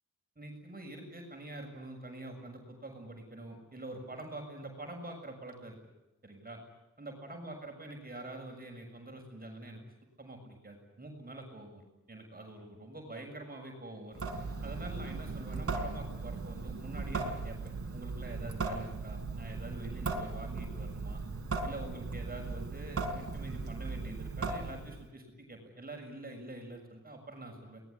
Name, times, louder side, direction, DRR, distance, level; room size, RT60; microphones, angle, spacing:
voice 1, 0.4-5.8 6.2-6.6 7.0-9.8 10.2-14.2 14.6-17.6 17.9-21.2 21.6-27.8, right 1 dB, 30° right, 2 dB, 6.9 m, -45 dB
Water tap faucet / Sink (filling or washing) / Drip, 14.1-25.1, right 3 dB, 50° right, 4.5 m, -38 dB
23.5 x 20.0 x 9.9 m, 0.96 s
cardioid pair, 80°, 30 cm